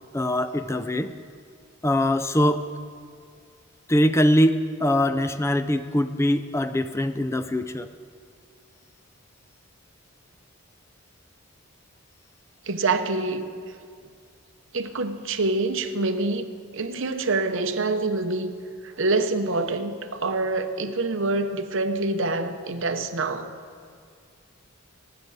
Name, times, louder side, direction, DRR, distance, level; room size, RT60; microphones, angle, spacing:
voice 1, 0.1-1.1 1.8-2.6 3.9-7.9, left 1 dB, 10° left, 11 dB, 0.4 m, -22 dB
voice 2, 12.7-13.5 14.7-16.5 16.7-18.5 18.8-23.5, right 3 dB, 60° right, 7 dB, 0.9 m, -26 dB
24.5 x 10.5 x 4.1 m, 2.2 s
head